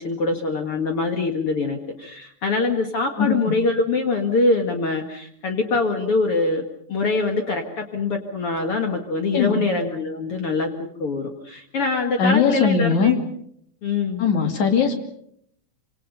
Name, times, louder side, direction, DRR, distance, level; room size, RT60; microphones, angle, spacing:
voice 1, 0.0-6.6 6.9-10.7 11.0-13.1 13.8-14.3, left 3 dB, 50° left, 3 dB, 2.6 m, -24 dB
voice 2, 3.2-3.5 9.3-9.6 12.2-13.2 14.2-15.0, left 6 dB, 75° left, 5 dB, 4.0 m, -20 dB
26.5 x 26.0 x 5.4 m, 0.68 s
omnidirectional pair, 3.4 m